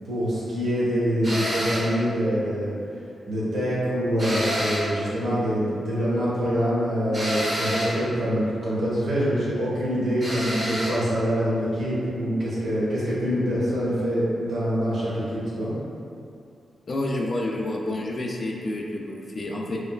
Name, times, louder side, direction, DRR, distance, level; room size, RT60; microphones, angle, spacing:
voice 1, 0.1-2.7 3.3-15.7, equal, 80° right, -8 dB, 1.2 m, -25 dB
sound 1, 1.2-2.0 4.2-5.0 7.1-8.0 10.2-11.0, equal, 45° right, 1.4 m, -28 dB
voice 2, 16.9-19.8, left 1 dB, 50° left, 0 dB, 0.4 m, -29 dB
5.1 x 2.2 x 2.3 m, 2.5 s
cardioid pair, 50°, 0 cm